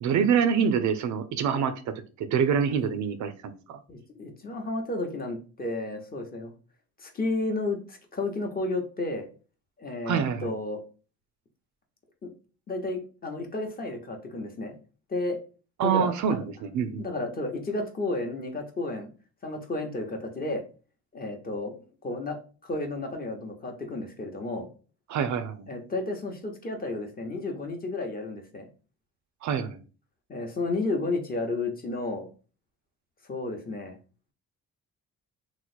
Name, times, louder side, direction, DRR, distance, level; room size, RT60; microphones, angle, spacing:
voice 1, 0.0-3.8 10.1-10.5 15.8-17.1 25.1-25.6 29.4-29.8, right 7 dB, 70° right, 10 dB, 0.5 m, -26 dB
voice 2, 3.9-6.5 7.0-9.3 9.8-10.8 12.2-12.3 12.7-14.8 15.1-15.4 15.8-16.4 17.0-19.1 19.4-20.6 21.1-22.4 22.6-24.7 25.7-28.7 30.3-32.3 33.3-34.0, left 2 dB, 30° left, 3 dB, 0.8 m, -32 dB
3.0 x 2.0 x 4.1 m, 0.37 s
cardioid pair, 90°, 30 cm